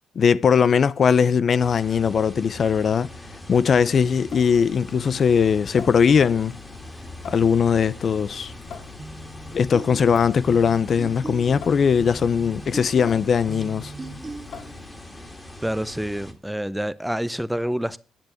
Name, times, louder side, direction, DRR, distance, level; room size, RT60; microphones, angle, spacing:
voice 1, 0.2-3.1 3.5-6.5 7.3-8.5 9.5-13.9, left 6 dB, 50° left, 0.4 m, -20 dB
sound 1, 1.6-16.3, left 1 dB, 15° left, 2.1 m, -41 dB
Water tap faucet / Sink (filling or washing) / Drip, 4.2-15.2, left 6 dB, 75° left, 2.3 m, -45 dB
sound 2, 9.0-15.0, right 3 dB, 25° right, 1.5 m, -39 dB
voice 2, 15.6-18.0, equal, 5° right, 0.6 m, -27 dB
10.5 x 6.9 x 6.3 m
cardioid pair, 90°, 0 cm